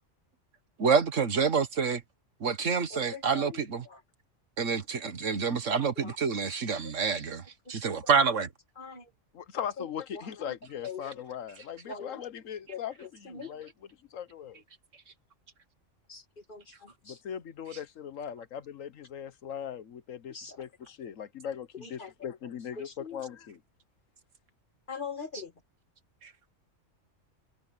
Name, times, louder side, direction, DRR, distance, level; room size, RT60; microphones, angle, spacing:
voice 1, 0.8-2.0 2.4-3.8 4.6-8.5 26.2-26.3, right 5 dB, 75° right, 1.8 m, -27 dB
voice 2, 2.9-4.0 5.5-6.2 6.8-6.9 8.0-8.5 8.8-9.1 9.8-9.9 10.1-10.5 10.8-11.1 11.8-12.2 12.7-13.5 16.1-17.2 20.3-20.6 21.7-22.5 22.8-23.2 24.9-25.5, left 5 dB, 40° left, 2.1 m, -43 dB
voice 3, 9.3-13.7 14.1-14.6 17.0-23.6, left 8 dB, 85° left, 1.4 m, -39 dB
omnidirectional pair, 1.3 m